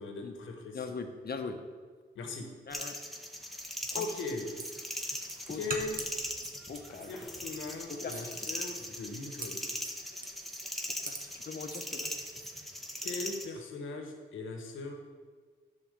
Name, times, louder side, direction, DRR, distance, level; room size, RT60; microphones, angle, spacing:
voice 1, 0.0-0.9 2.1-2.5 3.9-4.6 5.5-6.0 7.1-9.8 13.0-14.9, left 3 dB, 90° left, 4 dB, 1.2 m, -39 dB
voice 2, 0.7-1.6 2.7-3.0 3.9-4.0 5.5-5.7 6.7-7.1 7.9-8.3 11.0-12.1, left 4 dB, 50° left, 6 dB, 1.0 m, -40 dB
sound 1, 2.7-13.5, equal, ahead, 1.3 m, -40 dB
sound 2, 3.6-12.6, right 3 dB, 45° right, 1.1 m, -45 dB
10.0 x 4.2 x 6.7 m, 1.5 s
cardioid pair, 55°, 20 cm